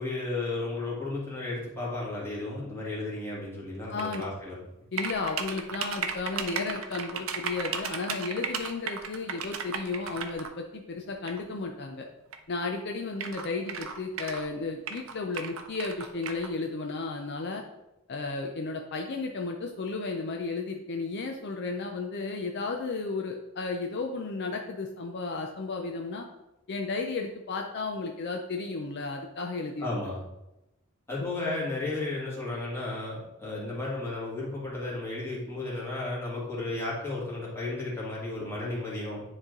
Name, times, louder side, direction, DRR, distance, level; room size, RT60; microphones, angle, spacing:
voice 1, 0.0-4.6 29.8-30.2 31.1-39.2, left 2 dB, 10° left, -6 dB, 1.9 m, -33 dB
voice 2, 3.9-4.2 4.9-12.1 12.5-17.6 18.1-26.3 26.7-29.9 31.2-31.3, left 3 dB, 50° left, 2 dB, 0.5 m, -33 dB
sound 1, 4.0-4.3 5.0-10.5 11.3-11.4 12.3-12.4 12.6-12.7 13.2-14.5 14.9-16.5, right 6 dB, 65° right, 0.6 m, -35 dB
9.7 x 3.2 x 3.7 m, 0.92 s
head